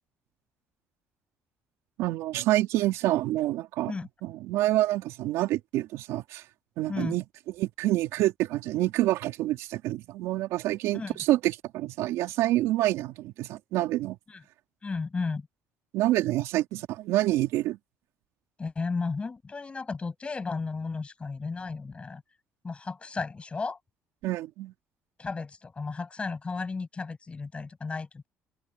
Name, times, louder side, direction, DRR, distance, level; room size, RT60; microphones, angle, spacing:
voice 1, 2.0-3.9 4.2-6.4 6.8-7.2 7.6-14.2 15.9-17.8 24.2-24.7, right 15 dB, 80° right, 3.3 m, -27 dB
voice 2, 14.8-15.5 18.6-22.2 22.6-23.8 25.2-28.3, left 4 dB, 25° left, 7.9 m, -34 dB
cardioid pair, 110°, 5 cm